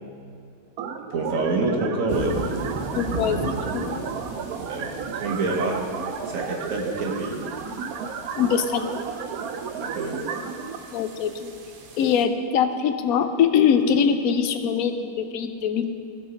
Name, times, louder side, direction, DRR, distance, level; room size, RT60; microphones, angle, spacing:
sound 1, 0.8-10.8, right 6 dB, 90° right, 1.1 m, -33 dB
voice 1, 1.1-2.3 4.7-5.8 6.3-7.4 9.8-10.2, right 2 dB, 65° right, 1 dB, 1.5 m, -27 dB
sound 2, 2.1-12.2, right 4 dB, 50° right, 0.7 m, -37 dB
voice 2, 2.9-4.1 8.4-8.9 10.9-11.5 12.0-15.9, left 7 dB, 90° left, 8 dB, 1.1 m, -23 dB
15.5 x 5.5 x 4.4 m, 2.6 s
omnidirectional pair, 1.5 m